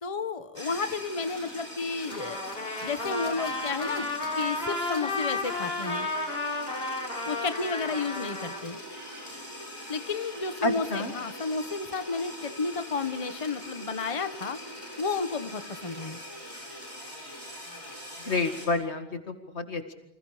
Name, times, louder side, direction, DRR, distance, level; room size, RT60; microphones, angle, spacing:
voice 1, 0.0-2.4 2.8-4.1 4.4-6.1 7.3-8.8 9.9-14.6 15.0-16.2, left 4 dB, 30° left, 9 dB, 1.2 m, -32 dB
sound 1, 0.5-18.7, equal, 30° right, 6.7 m, -42 dB
Trumpet, 2.1-8.6, left 2 dB, 65° left, 3.8 m, -33 dB
voice 2, 10.6-11.1 18.2-19.9, left 3 dB, 90° left, 6 dB, 2.4 m, -29 dB
29.0 x 26.5 x 5.0 m, 0.84 s
omnidirectional pair, 1.1 m